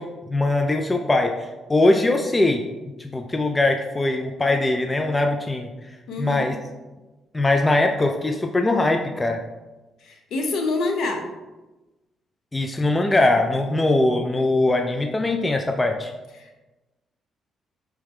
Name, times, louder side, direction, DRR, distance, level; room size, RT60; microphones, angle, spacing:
voice 1, 0.0-2.7 3.0-6.6 7.3-9.4 12.5-16.1, left 2 dB, 20° left, 4 dB, 0.3 m, -21 dB
voice 2, 6.1-6.5 10.0-11.3 16.4-16.6, left 3 dB, 75° left, 3 dB, 0.8 m, -27 dB
4.6 x 3.4 x 3.2 m, 1.1 s
cardioid pair, 90°, 0 cm